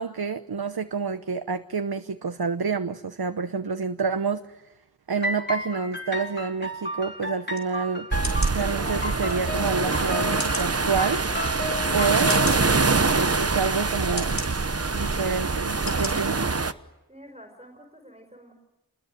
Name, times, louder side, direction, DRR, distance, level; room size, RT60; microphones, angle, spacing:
voice 1, 0.0-4.6 5.1-8.1 8.5-11.2 11.9-12.3 12.7-14.4 14.9-16.5, right 5 dB, 85° right, 9 dB, 1.0 m, -28 dB
sound 1, 5.2-12.6, left 1 dB, 30° left, 3.9 m, -33 dB
sound 2, 7.5-7.7 8.2-8.6 9.3-9.4 10.4-10.7 11.4-11.5 12.3-12.6 13.4-13.5 14.2-14.5 15.2-15.3 15.9-16.1 16.5-16.6, left 2 dB, 50° left, 5.4 m, -34 dB
sound 3, 8.1-16.7, right 3 dB, 40° right, 1.1 m, -24 dB
voice 2, 17.1-18.5, equal, 15° right, 4 dB, 5.0 m, -49 dB
29.0 x 21.0 x 9.1 m, 1.0 s
wide cardioid pair, 55°, 36 cm